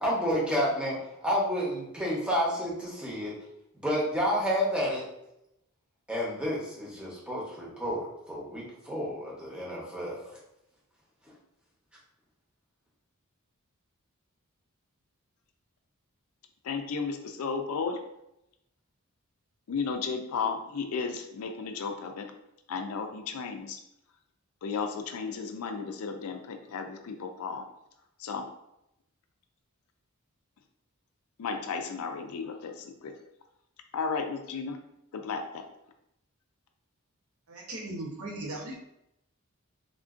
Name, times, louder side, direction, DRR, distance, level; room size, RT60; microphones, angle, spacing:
voice 1, 0.0-3.3 3.7-5.0 6.1-10.2, equal, 5° right, -6 dB, 0.8 m, -30 dB
voice 2, 16.6-18.0 19.7-22.3 22.7-23.8 24.6-27.6 28.2-28.5 31.4-33.2 33.9-34.8 35.1-35.6, left 5 dB, 70° left, 6 dB, 0.4 m, -34 dB
voice 3, 37.5-38.7, right 2 dB, 70° right, -2 dB, 0.8 m, -37 dB
3.6 x 2.5 x 2.4 m, 0.83 s
head